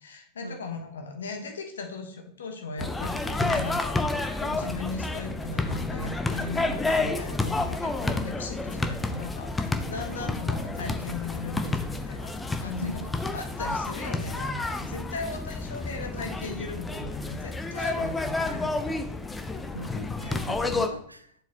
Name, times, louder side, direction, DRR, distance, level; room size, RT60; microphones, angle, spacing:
voice 1, 0.0-12.3 12.6-13.0 13.3-19.0, left 3 dB, 65° left, 5 dB, 1.0 m, -37 dB
sound 1, 2.8-20.9, left 2 dB, 10° left, 0.6 m, -30 dB
voice 2, 12.5-13.1 19.7-21.3, right 1 dB, 85° right, 10 dB, 0.5 m, -39 dB
7.2 x 4.9 x 2.9 m, 0.64 s
figure-of-eight pair, 90°, 0 cm